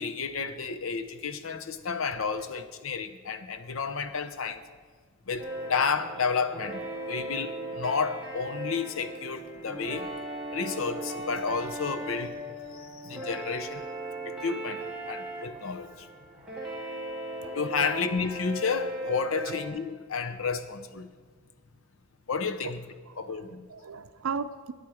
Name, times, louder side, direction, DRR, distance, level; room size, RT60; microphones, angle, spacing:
voice 1, 0.0-4.6 5.3-10.1 10.5-12.4 12.7-13.8 14.3-16.1 17.5-21.1 22.3-22.8 23.2-23.7, left 5 dB, 70° left, 0.7 m, -31 dB
sound 1, 5.4-19.7, right 1 dB, 5° right, 2.0 m, -38 dB
voice 2, 23.0-24.7, right 5 dB, 75° right, 0.5 m, -37 dB
13.5 x 9.1 x 4.9 m
head